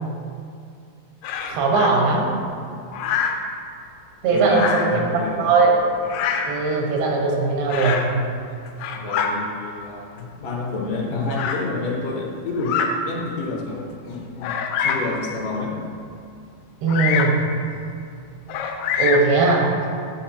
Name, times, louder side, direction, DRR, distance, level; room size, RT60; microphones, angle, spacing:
Bird vocalization bird call bird song, 1.2-1.9 2.9-3.5 4.4-5.0 6.0-6.6 7.7-8.1 8.7-9.3 10.2-10.3 11.3-11.6 12.6-12.9 13.5-13.6 14.4-15.1 16.9-17.4 18.5-19.4, left 7 dB, 90° left, 2.6 m, -25 dB
voice 1, 1.5-2.3 4.2-5.0 5.4-5.8 6.5-8.1 16.8-17.4 19.0-19.7, right 4 dB, 90° right, -1 dB, 3.2 m, -19 dB
voice 2, 4.3-5.5 8.9-15.7, left 3 dB, 75° left, -2 dB, 2.2 m, -29 dB
10.0 x 7.8 x 2.8 m, 2.4 s
omnidirectional pair, 4.4 m